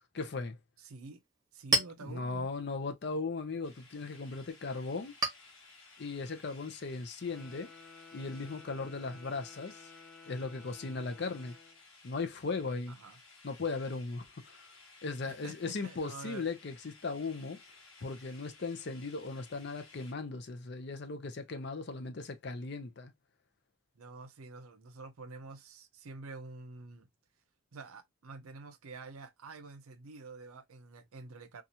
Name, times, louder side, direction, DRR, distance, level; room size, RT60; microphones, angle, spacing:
voice 1, 0.1-0.6 2.0-5.1 6.0-7.7 8.1-9.9 10.3-11.5 12.0-13.0 13.4-14.7 15.0-17.6 18.0-23.1, left 3 dB, 50° left, 0.5 m, -37 dB
voice 2, 0.8-1.2 1.5-2.5 12.9-13.2 15.3-15.6 15.8-16.5 24.0-27.1 27.7-31.6, right 3 dB, 85° right, 0.6 m, -48 dB
Chink clink, 1.1-8.3, right 2 dB, 20° right, 1.0 m, -39 dB
sound 1, 3.6-20.1, left 3 dB, 80° left, 1.0 m, -58 dB
Wind instrument woodwind instrument, 7.2-11.8, left 4 dB, 5° left, 0.9 m, -54 dB
2.8 x 2.4 x 2.7 m
head